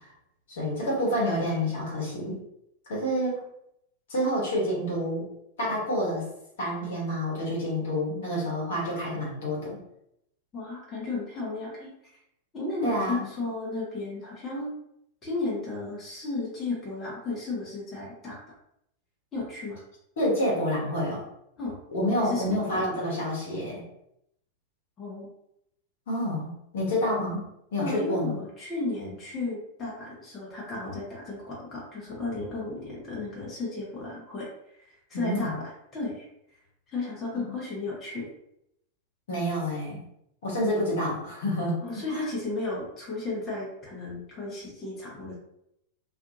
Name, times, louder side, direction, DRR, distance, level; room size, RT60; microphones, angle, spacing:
voice 1, 0.5-2.4 2.9-3.4 4.1-5.2 5.6-6.2 6.6-9.8 12.8-13.2 20.2-21.2 21.9-23.8 26.1-27.4 27.7-28.4 35.1-35.6 37.3-37.5 39.3-40.0 40.4-41.7 42.1-42.3, equal, 60° left, -5 dB, 1.2 m, -28 dB
voice 2, 10.5-11.9 12.5-14.7 15.2-18.4 19.3-19.8 21.6-21.7 22.2-22.8 25.0-25.3 27.8-34.5 34.9-35.5 35.9-36.2 36.9-38.2 41.8-45.4, left 3 dB, 25° left, -5 dB, 1.0 m, -34 dB
2.5 x 2.4 x 2.6 m, 0.77 s
figure-of-eight pair, 90°, 0 cm